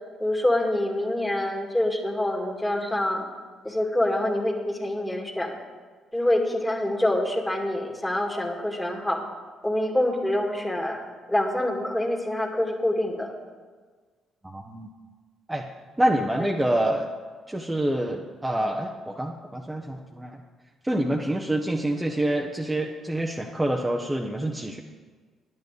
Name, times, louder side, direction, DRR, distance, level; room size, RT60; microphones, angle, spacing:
voice 1, 0.2-3.2 3.6-5.6 6.1-9.2 9.6-13.3 16.4-16.5, left 1 dB, 10° left, 2 dB, 2.2 m, -26 dB
voice 2, 14.4-14.9 15.5-15.6 16.0-17.1 17.5-20.4 20.8-24.8, right 1 dB, 15° right, 1 dB, 1.1 m, -26 dB
10.5 x 8.3 x 6.8 m, 1.5 s
hypercardioid pair, 45°, 0 cm